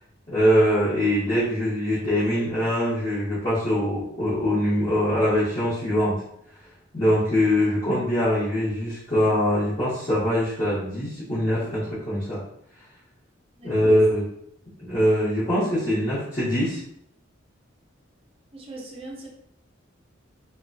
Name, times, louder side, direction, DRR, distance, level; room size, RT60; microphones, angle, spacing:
voice 1, 0.3-6.2 6.9-12.4 13.6-14.2 14.8-16.8, equal, 35° left, -13 dB, 1.0 m, -23 dB
voice 2, 13.5-14.0 18.5-19.3, right 3 dB, 30° right, -2 dB, 0.6 m, -38 dB
2.7 x 2.2 x 2.6 m, 0.72 s
head